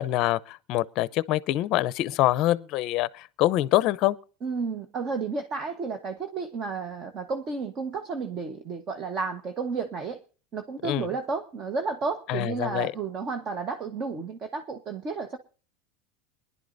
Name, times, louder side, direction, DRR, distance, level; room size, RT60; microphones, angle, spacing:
voice 1, 0.0-4.2 10.8-11.1 12.3-12.9, left 15 dB, 45° left, 0.6 m, -25 dB
voice 2, 4.4-10.2 10.5-15.4, right 4 dB, 30° right, 1.2 m, -32 dB
23.0 x 11.0 x 2.6 m
supercardioid pair, 150°, 0 cm